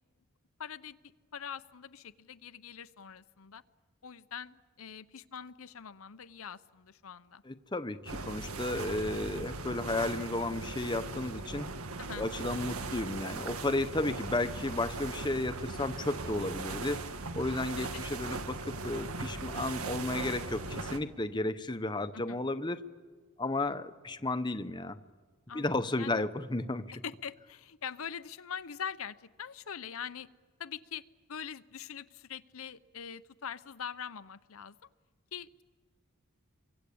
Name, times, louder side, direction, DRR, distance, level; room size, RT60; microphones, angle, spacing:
voice 1, 0.6-1.0 1.3-3.6 4.0-7.4 12.0-12.3 17.9-18.0 22.1-22.4 25.5-26.2 27.0-30.3 30.6-31.0 31.3-34.8 35.3-35.6, left 7 dB, 75° left, 14 dB, 0.7 m, -43 dB
voice 2, 7.5-11.7 12.2-17.0 17.3-22.8 23.4-25.0 25.5-26.8, left 2 dB, 20° left, 11 dB, 0.9 m, -33 dB
sound 1, 8.1-21.0, right 3 dB, 85° right, 1.9 m, -39 dB
28.5 x 24.0 x 8.6 m, 1.5 s
head